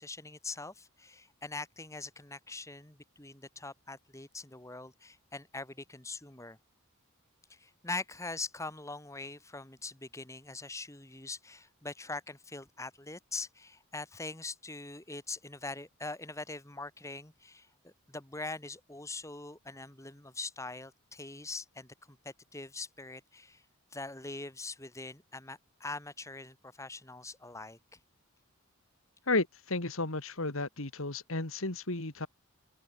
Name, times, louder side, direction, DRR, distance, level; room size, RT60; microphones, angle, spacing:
voice 1, 0.0-6.6 7.5-23.6 23.9-28.0, left 3 dB, 15° left, 2.1 m, -43 dB
voice 2, 29.3-32.3, left 2 dB, 65° left, 2.3 m, -33 dB
head